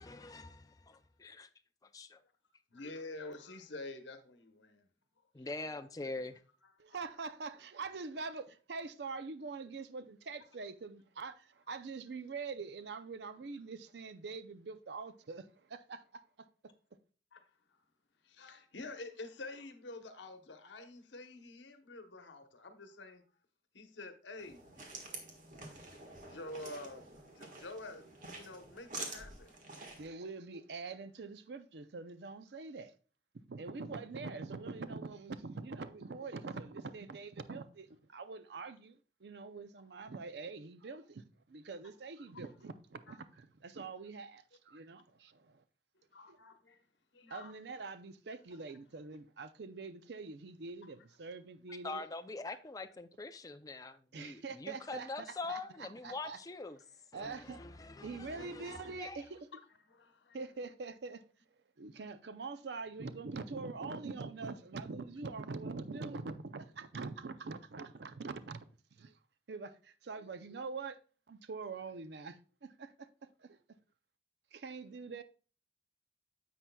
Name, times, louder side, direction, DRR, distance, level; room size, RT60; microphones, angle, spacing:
voice 1, 0.0-0.4 1.9-2.1 5.3-6.4 51.8-56.8 57.1-59.2, left 3 dB, 20° left, 0.4 m, -43 dB
voice 2, 2.7-4.9 5.4-6.3 17.3-17.8 18.2-23.3 23.7-25.3 25.7-28.0 28.3-29.6 43.1-43.2 46.1-46.8 47.1-47.5 59.9-60.4, left 2 dB, 85° left, 1.0 m, -48 dB
voice 3, 6.8-16.5 30.0-32.9 33.3-45.6 46.3-46.4 47.3-52.0 54.1-56.4 57.1-59.5 60.3-61.2 61.8-68.6 68.9-69.2 69.5-71.0 71.3-73.1 73.4-73.6 74.5-75.2, right 4 dB, 65° right, 0.5 m, -44 dB
sound 1, 24.4-30.1, right 3 dB, 45° right, 1.5 m, -48 dB
9.9 x 7.6 x 2.3 m
head